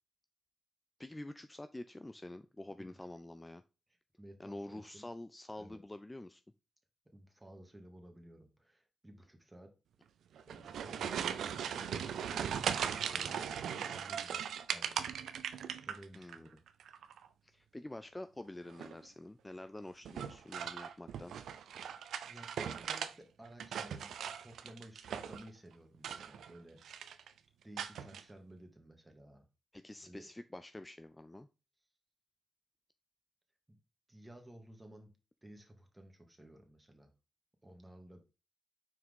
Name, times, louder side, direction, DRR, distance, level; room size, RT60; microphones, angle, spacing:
voice 1, 1.0-3.6 4.4-6.4 16.1-16.5 17.4-21.3 29.7-31.5, left 1 dB, 15° left, 11 dB, 0.5 m, -47 dB
voice 2, 3.9-5.0 5.6-5.8 7.1-9.7 10.5-14.4 14.7-15.1 15.4-16.6 22.2-26.8 27.6-29.5 30.0-30.3 33.7-33.8 34.1-35.1 35.4-37.1 37.6-38.2, right 1 dB, 15° right, 3 dB, 2.1 m, -55 dB
sound 1, 10.4-16.4 16.7-17.3 18.7-19.1 20.1-23.1 23.5-25.5 25.9-26.6 26.8-27.3 27.8-28.2, right 8 dB, 75° right, 0.5 m, -39 dB
6.0 x 4.6 x 3.7 m, 0.30 s
supercardioid pair, 45°, 0 cm